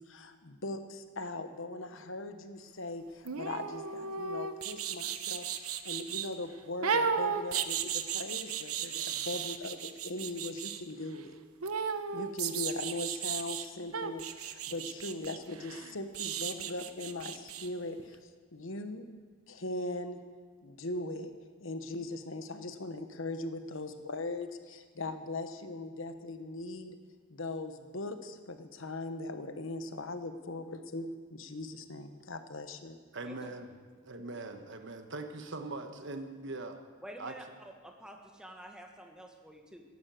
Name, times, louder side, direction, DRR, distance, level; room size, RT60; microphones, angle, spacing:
voice 1, 0.0-11.4 12.1-19.1 19.5-20.2 20.6-21.3 21.6-27.0 27.3-30.6 30.9-32.9, left 2 dB, 65° left, 9 dB, 1.1 m, -40 dB
sound 1, 3.2-6.3 6.8-10.8 11.6-13.7 13.9-17.7 18.0-18.1, right 7 dB, 85° right, 1.0 m, -35 dB
voice 2, 33.2-33.7 34.1-36.8 37.2-37.3, right 2 dB, 55° right, 6 dB, 1.3 m, -41 dB
voice 3, 37.0-39.8, equal, 5° right, 3 dB, 1.6 m, -49 dB
15.0 x 11.5 x 7.8 m, 1.5 s
head